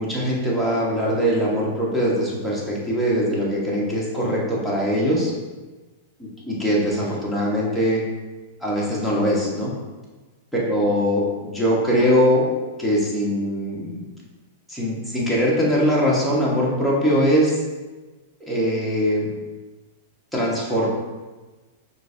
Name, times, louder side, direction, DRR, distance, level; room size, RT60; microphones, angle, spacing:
voice 1, 0.0-5.3 6.5-8.0 8.6-9.7 10.5-12.5 12.8-14.0 14.7-17.6 18.4-19.3 20.3-20.9, equal, 5° right, -6 dB, 1.3 m, -21 dB
6.0 x 2.7 x 2.7 m, 1.2 s
hypercardioid pair, 105°, 0 cm